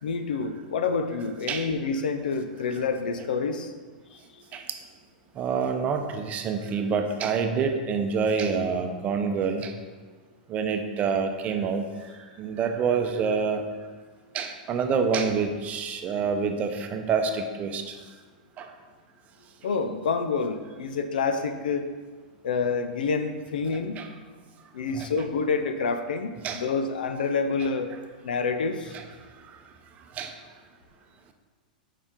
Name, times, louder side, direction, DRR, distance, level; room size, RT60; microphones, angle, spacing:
voice 1, 0.0-3.7 4.1-4.4 19.6-21.9 22.4-24.0 24.7-27.9 28.2-28.9, left 4 dB, 80° left, 8 dB, 0.6 m, -28 dB
voice 2, 5.4-9.7 10.5-11.8 12.4-13.6 14.3-18.0 18.6-18.7 24.0-24.1 24.9-25.1 26.4-26.6 28.9-29.0 30.2-30.3, right 5 dB, 30° right, 5 dB, 0.7 m, -27 dB
7.0 x 5.0 x 3.7 m, 1.4 s
hypercardioid pair, 120°, 5 cm